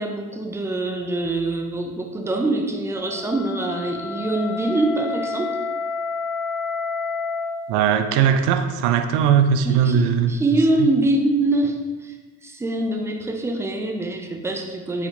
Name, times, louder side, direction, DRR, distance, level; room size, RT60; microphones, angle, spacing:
voice 1, 0.0-5.6 9.6-12.2 12.4-15.1, right 2 dB, 5° right, 3 dB, 0.3 m, -24 dB
Wind instrument woodwind instrument, 3.0-7.6, left 4 dB, 10° left, 1.2 m, -29 dB
voice 2, 7.7-10.3 10.8-10.9, right 8 dB, 60° right, 8 dB, 0.5 m, -19 dB
4.9 x 3.4 x 2.7 m, 1.3 s
hypercardioid pair, 75°, 45 cm